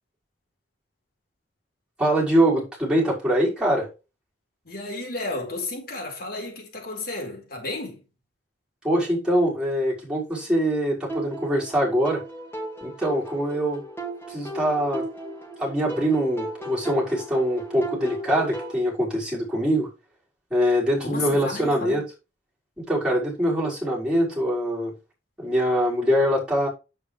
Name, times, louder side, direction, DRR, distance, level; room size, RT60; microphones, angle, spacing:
voice 1, 2.0-3.9 8.8-12.2 12.8-13.8 14.3-15.0 15.6-19.9 20.5-22.0 22.9-24.9 25.4-26.7, equal, 5° right, 6.0 m, -23 dB
voice 2, 4.6-8.0 21.0-22.0, left 2 dB, 55° left, 4.4 m, -32 dB
sound 1, 11.1-18.8, right 1 dB, 10° left, 2.9 m, -36 dB
9.5 x 8.8 x 3.4 m
head